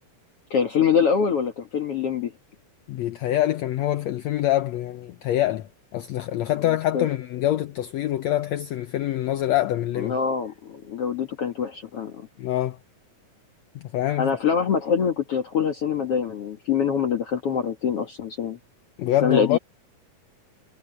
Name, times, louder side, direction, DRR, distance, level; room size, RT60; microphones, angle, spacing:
voice 1, 0.5-2.3 6.9-7.1 10.0-12.3 14.2-18.6 19.2-19.6, left 6 dB, 50° left, 2.1 m, -24 dB
voice 2, 2.9-10.2 12.4-12.8 13.7-14.3 19.0-19.6, left 13 dB, 75° left, 1.6 m, -25 dB
omnidirectional pair, 4.1 m